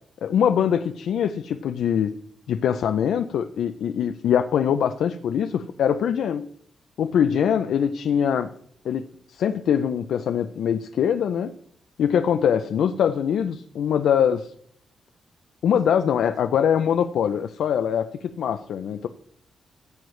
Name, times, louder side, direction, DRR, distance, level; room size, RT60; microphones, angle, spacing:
voice 1, 0.2-2.1 2.5-6.4 7.0-8.5 8.8-9.0 9.3-11.5 12.0-14.5 15.6-19.1, left 8 dB, 85° left, 8 dB, 0.5 m, -23 dB
15.0 x 8.0 x 3.2 m, 0.65 s
wide cardioid pair, 170°, 0 cm